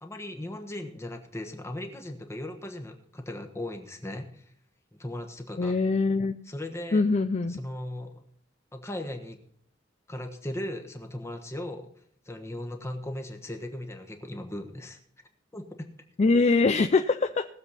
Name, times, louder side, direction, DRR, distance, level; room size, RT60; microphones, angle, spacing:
voice 1, 0.0-4.5 5.0-5.8 6.5-7.0 7.6-8.2 8.7-9.4 10.1-11.9 12.2-15.0 15.5-15.9, left 1 dB, 15° left, 5 dB, 1.2 m, -37 dB
voice 2, 5.6-6.4 6.9-7.6 16.2-17.5, left 3 dB, 35° left, 8 dB, 0.4 m, -23 dB
19.0 x 7.3 x 4.1 m, 0.64 s
head